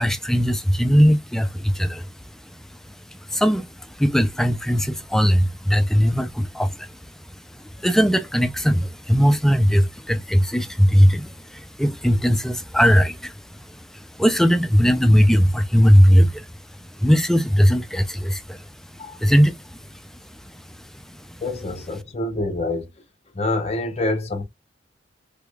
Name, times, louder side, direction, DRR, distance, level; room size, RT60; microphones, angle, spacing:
voice 1, 0.0-2.1 2.5-7.0 7.3-16.5 16.8-18.7 19.2-20.0 20.4-21.4, equal, ahead, 0.3 m, -19 dB
voice 2, 21.4-22.9 23.3-24.4, left 2 dB, 35° left, 0.7 m, -26 dB
3.4 x 3.4 x 2.2 m
head